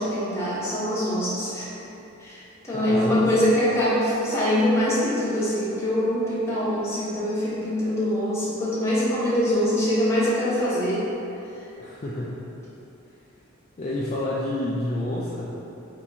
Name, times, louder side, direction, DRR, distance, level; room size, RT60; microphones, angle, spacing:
voice 1, 0.0-1.7 2.2-11.1, equal, 15° left, -10 dB, 1.0 m, -24 dB
voice 2, 2.7-3.3 11.8-12.4 13.8-15.6, left 1 dB, 35° left, -7 dB, 0.3 m, -29 dB
3.5 x 2.8 x 4.1 m, 3.0 s
head